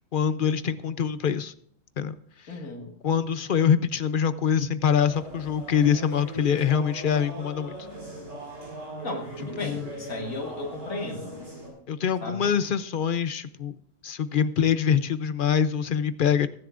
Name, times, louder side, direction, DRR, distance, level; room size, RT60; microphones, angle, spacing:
voice 1, 0.1-1.5 2.0-2.2 2.4-2.5 3.0-7.8 9.6-9.9 11.9-13.8 14.0-16.5, left 7 dB, 50° left, 13 dB, 0.7 m, -24 dB
voice 2, 2.5-2.9 9.0-11.4 12.2-12.4, left 2 dB, 85° left, 1 dB, 2.4 m, -35 dB
sound 1, 5.0-11.7, right 1 dB, 65° right, 6.3 m, -39 dB
22.0 x 10.5 x 2.5 m, 0.64 s
omnidirectional pair, 1.4 m